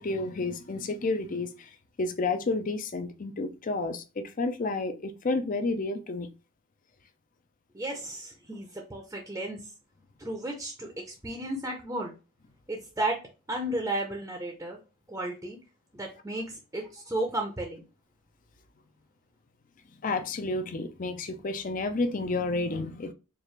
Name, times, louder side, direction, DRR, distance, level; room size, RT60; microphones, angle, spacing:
voice 1, 0.0-1.7 2.0-6.3 20.0-23.1, left 3 dB, 35° left, 0.5 m, -30 dB
voice 2, 7.7-9.6 10.2-12.1 12.7-13.2 13.5-14.8 15.1-15.6 15.9-17.8, right 1 dB, 10° right, 0.6 m, -33 dB
4.6 x 2.4 x 3.2 m
head